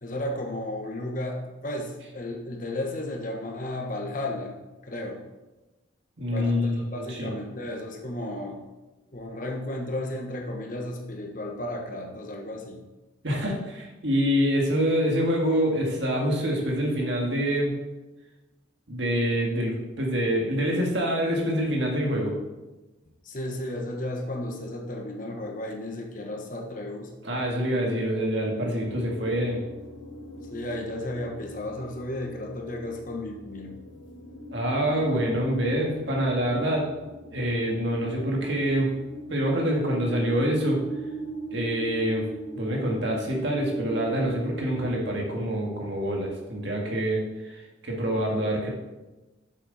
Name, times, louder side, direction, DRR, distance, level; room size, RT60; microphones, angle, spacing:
voice 1, 0.0-4.6 4.8-5.2 6.3-8.6 9.1-12.8 23.2-27.1 30.4-33.8, left 1 dB, 40° left, 1 dB, 1.2 m, -34 dB
voice 2, 6.2-7.3 13.2-17.7 18.9-22.3 27.2-29.6 34.5-36.9 37.3-38.9 39.3-40.8 41.5-42.3 42.5-48.7, equal, 60° right, -1 dB, 2.0 m, -26 dB
sound 1, 28.8-45.1, right 2 dB, 70° left, 1.1 m, -40 dB
7.6 x 7.6 x 4.1 m, 1.1 s
head